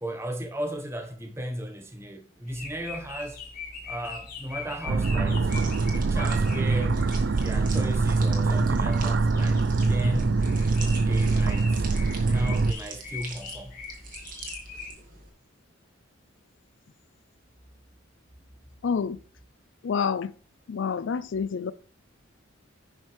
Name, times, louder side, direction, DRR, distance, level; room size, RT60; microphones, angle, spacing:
voice 1, 0.0-3.4 3.8-5.5 5.9-7.1 7.4-10.4 11.0-11.8 12.3-13.8, equal, 15° right, 0.9 m, -35 dB
sound 1, 2.5-14.9, left 4 dB, 45° left, 3.8 m, -42 dB
sound 2, 4.9-12.7, right 3 dB, 60° right, 0.5 m, -24 dB
sound 3, 5.4-15.3, right 4 dB, 40° right, 2.1 m, -44 dB
voice 2, 18.8-19.2 19.8-20.3 20.7-21.7, left 6 dB, 70° left, 0.4 m, -28 dB
11.0 x 6.1 x 3.4 m
head